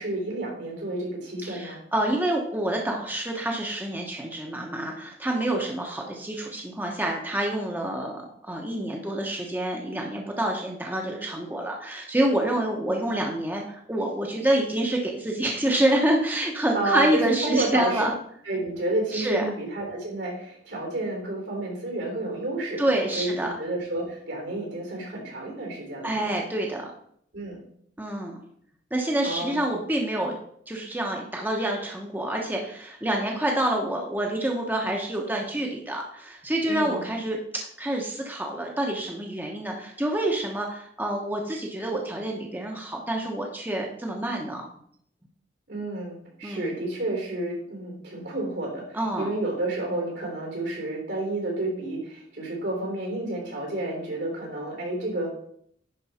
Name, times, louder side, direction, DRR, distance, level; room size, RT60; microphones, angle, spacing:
voice 1, 0.0-1.8 16.7-18.1 18.4-22.8 23.2-23.3 23.6-26.2 27.3-27.6 29.2-29.6 36.6-37.1 45.7-55.3, right 2 dB, 75° right, -1 dB, 3.7 m, -30 dB
voice 2, 1.4-18.1 19.1-19.5 22.8-23.6 26.0-26.9 28.0-28.4 28.9-30.4 30.7-44.7 46.4-46.7 48.9-49.3, right 1 dB, 10° right, 0 dB, 0.9 m, -27 dB
10.5 x 4.7 x 4.2 m, 0.67 s
head